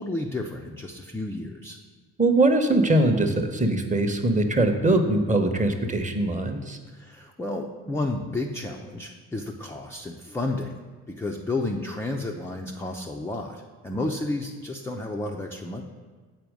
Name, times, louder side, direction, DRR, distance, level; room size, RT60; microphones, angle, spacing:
voice 1, 0.0-1.8 6.9-10.7 11.1-15.8, left 2 dB, 5° left, 0 dB, 0.3 m, -31 dB
voice 2, 2.2-6.8, right 2 dB, 15° right, 6 dB, 0.8 m, -22 dB
7.7 x 4.4 x 5.1 m, 1.4 s
figure-of-eight pair, 40°, 46 cm